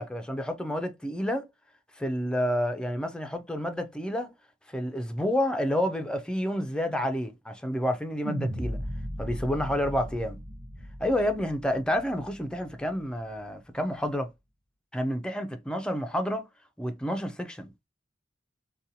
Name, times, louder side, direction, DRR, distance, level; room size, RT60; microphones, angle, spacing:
voice 1, 0.0-1.5 2.0-4.3 4.7-8.8 9.2-10.4 11.0-14.3 14.9-16.5 16.8-17.7, equal, 5° left, 0.4 m, -29 dB
sound 1, 8.2-12.6, equal, 55° right, 0.7 m, -36 dB
2.7 x 2.2 x 2.7 m
head